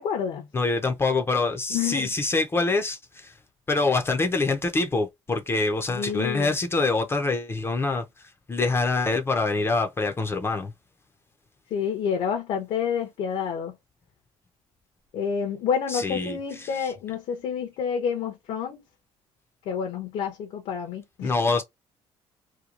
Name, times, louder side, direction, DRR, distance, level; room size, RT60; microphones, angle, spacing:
voice 1, 0.0-0.5 1.7-2.1 5.9-6.5 11.7-13.7 15.1-18.8 19.7-21.3, left 7 dB, 70° left, 0.8 m, -28 dB
voice 2, 0.5-3.3 3.7-8.0 8.5-10.7 15.9-16.9 21.2-21.6, left 3 dB, 20° left, 0.6 m, -25 dB
2.9 x 2.2 x 2.4 m
cardioid pair, 125°, 11 cm